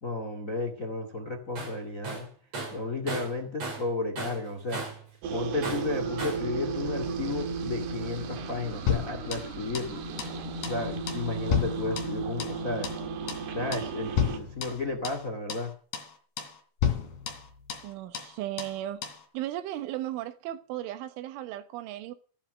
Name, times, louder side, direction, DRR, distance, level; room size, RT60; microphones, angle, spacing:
voice 1, 0.0-2.3 2.7-4.8 5.3-10.0 10.6-12.9 13.4-15.7, left 3 dB, 80° left, 0.7 m, -33 dB
Tools, 1.6-1.8 2.0-3.9 4.2-5.1 5.6-6.5, right 3 dB, 35° right, 6.3 m, -36 dB
sound 1, 5.2-14.4, right 4 dB, 65° right, 3.5 m, -35 dB
sound 2, 8.9-9.9 10.2-10.4 10.6-10.8 11.1-12.6 12.8-13.0 13.3-13.5 13.7-13.9 14.2-15.2 15.5-15.7 15.9-16.1 16.4-16.6 16.8-17.9 18.1-18.3 18.6-18.8 19.0-19.2, left 8 dB, 55° left, 4.2 m, -31 dB
voice 2, 17.8-19.0 19.3-22.1, right 13 dB, 90° right, 3.6 m, -36 dB
15.0 x 11.5 x 6.4 m
omnidirectional pair, 5.4 m